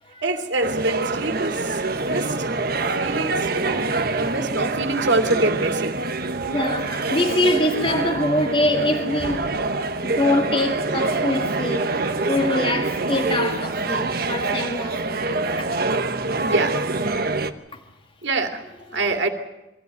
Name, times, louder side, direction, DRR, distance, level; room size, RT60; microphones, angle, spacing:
voice 1, 0.2-2.5 3.0-6.0 16.4-16.9 18.2-18.6 18.9-19.3, right 2 dB, 75° right, 2.6 m, -25 dB
sound 1, 0.6-17.5, right 3 dB, 55° right, 1.2 m, -25 dB
voice 2, 6.5-9.5 10.0-15.7, left 1 dB, 30° left, 1.9 m, -24 dB
23.5 x 15.0 x 9.3 m
head